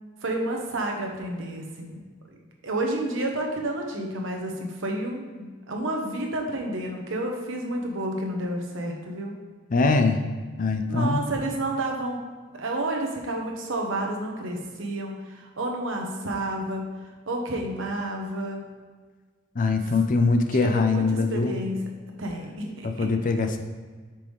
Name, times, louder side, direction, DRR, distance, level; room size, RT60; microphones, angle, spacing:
voice 1, 0.2-2.0 2.6-9.3 10.9-12.2 12.5-16.9 17.3-18.7 20.6-21.8 22.2-23.1, right 1 dB, 70° right, 1 dB, 1.0 m, -30 dB
voice 2, 9.7-10.2 10.6-11.2 19.6-21.5 22.8-23.6, left 3 dB, 40° left, 6 dB, 0.5 m, -22 dB
6.0 x 4.7 x 3.5 m, 1.4 s
head